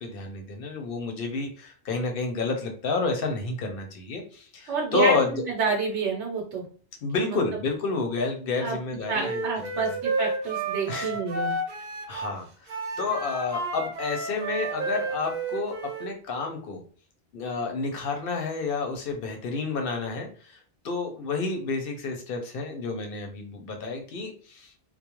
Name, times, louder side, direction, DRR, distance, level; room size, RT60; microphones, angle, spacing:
voice 1, 0.0-5.3 7.0-9.4 9.7-9.8 10.9-11.1 11.8-16.8 17.3-20.6 20.8-24.7, left 4 dB, 60° left, 3 dB, 0.7 m, -30 dB
voice 2, 4.7-6.6 7.1-7.4 8.6-8.8 9.1-11.6, right 4 dB, 80° right, -1 dB, 1.0 m, -28 dB
Wind instrument woodwind instrument, 9.2-12.4 12.7-16.1, right 2 dB, 55° right, 0.5 m, -31 dB
2.3 x 2.0 x 2.9 m, 0.42 s
omnidirectional pair, 1.2 m